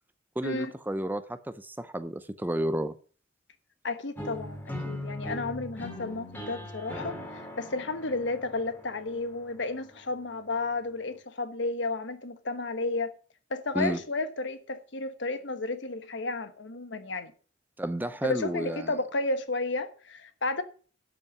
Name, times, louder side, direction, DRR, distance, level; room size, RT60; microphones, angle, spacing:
voice 1, 0.4-2.9 13.7-14.0 17.8-18.9, right 1 dB, 10° right, 0.5 m, -31 dB
voice 2, 3.8-13.1 13.5-17.3 18.2-20.6, left 3 dB, 65° left, 1.2 m, -32 dB
sound 1, 4.2-10.1, left 1 dB, 10° left, 2.4 m, -40 dB
12.0 x 5.6 x 6.0 m
head